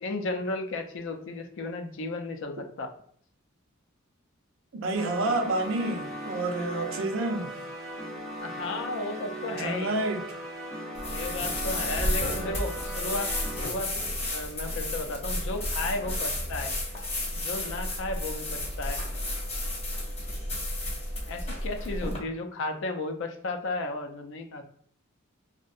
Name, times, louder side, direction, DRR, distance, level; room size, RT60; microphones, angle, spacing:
voice 1, 0.0-2.9 8.4-10.0 11.1-13.3 13.6-13.9 14.2-16.7 17.3-19.0 21.3-24.6, left 2 dB, 65° left, 0.4 m, -34 dB
voice 2, 4.7-7.5 9.6-10.4, right 2 dB, 65° right, 0.5 m, -29 dB
sound 1, 4.9-13.7, right 1 dB, ahead, 0.4 m, -38 dB
sound 2, 10.9-22.2, left 1 dB, 30° left, 0.8 m, -32 dB
2.6 x 2.1 x 2.4 m
head